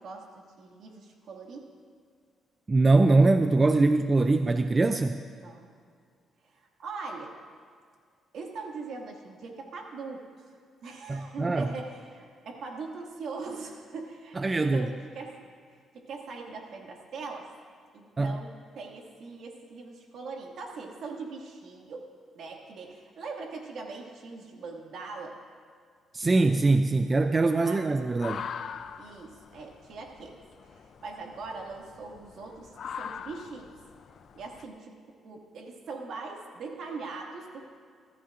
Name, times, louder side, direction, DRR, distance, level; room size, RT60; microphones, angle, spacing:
voice 1, 0.0-1.7 5.4-5.7 6.5-7.3 8.3-10.5 10.8-15.4 15.9-17.5 17.9-22.0 22.4-25.4 27.6-27.8 29.0-30.4 30.6-33.7 34.4-34.9 35.2-37.8, right 4 dB, 70° right, 1 dB, 2.1 m, -41 dB
voice 2, 2.7-5.2 11.1-11.7 14.4-14.9 18.2-18.4 26.1-28.5, right 3 dB, 25° right, 8 dB, 0.4 m, -23 dB
sound 1, 27.9-34.6, left 7 dB, 60° left, 0.5 m, -43 dB
20.5 x 14.0 x 2.6 m, 2.1 s
cardioid pair, 90°, 0 cm